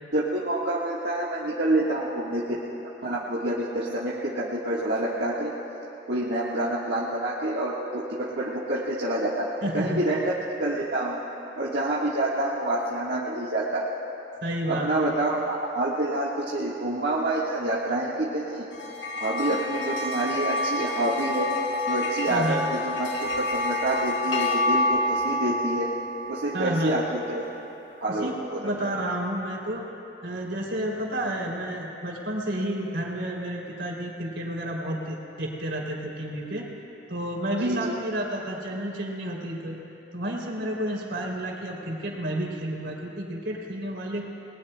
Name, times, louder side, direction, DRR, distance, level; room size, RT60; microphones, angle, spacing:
voice 1, 0.1-2.4 3.0-5.5 6.1-9.5 9.7-11.2 11.6-13.9 14.7-18.7 19.2-21.5 21.9-23.1 23.4-25.9 26.3-27.4 28.0-28.6 37.6-38.0, right 1 dB, 65° right, -7 dB, 1.5 m, -27 dB
voice 2, 9.6-10.0 14.4-15.1 22.3-22.6 26.5-26.9 28.1-29.8 30.2-36.7 37.1-39.8 40.1-44.3, right 1 dB, 85° right, -2 dB, 3.0 m, -31 dB
sound 1, 18.7-27.4, left 1 dB, 85° left, 1.3 m, -28 dB
29.5 x 20.0 x 2.2 m, 3.0 s
head